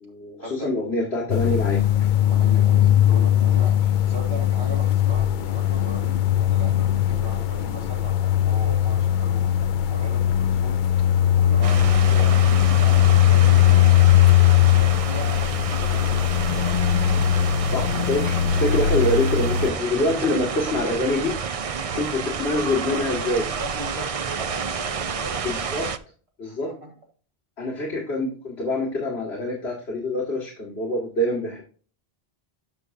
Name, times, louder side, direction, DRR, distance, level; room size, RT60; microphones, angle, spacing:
voice 1, 0.0-2.1 12.1-12.3 17.7-21.3 21.9-23.4 25.4-25.9 26.4-26.7 27.6-31.6, left 1 dB, 85° left, -2 dB, 2.4 m, -25 dB
sound 1, 1.3-19.7, left 11 dB, 55° left, 0.6 m, -19 dB
voice 2, 2.3-9.5 9.8-10.8 11.4-14.1 14.6-16.2 16.6-16.8 21.7-22.1 22.8-25.4 26.4-26.9, right 1 dB, 80° right, -1 dB, 2.4 m, -38 dB
sound 2, 11.6-26.0, right 6 dB, 45° right, 0.5 m, -30 dB
11.0 x 6.2 x 2.7 m, 0.39 s
omnidirectional pair, 1.1 m